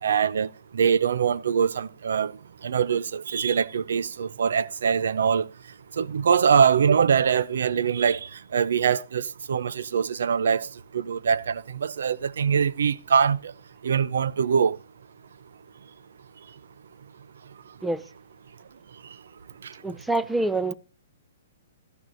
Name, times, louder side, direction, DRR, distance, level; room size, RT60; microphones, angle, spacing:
voice 1, 0.0-2.3 2.6-5.5 6.0-10.7 10.9-13.5 13.8-14.8 19.6-19.7, right 7 dB, 75° right, 0.6 m, -23 dB
voice 2, 19.8-20.7, right 2 dB, 5° right, 0.5 m, -26 dB
14.5 x 12.0 x 2.6 m
hypercardioid pair, 145°, 0 cm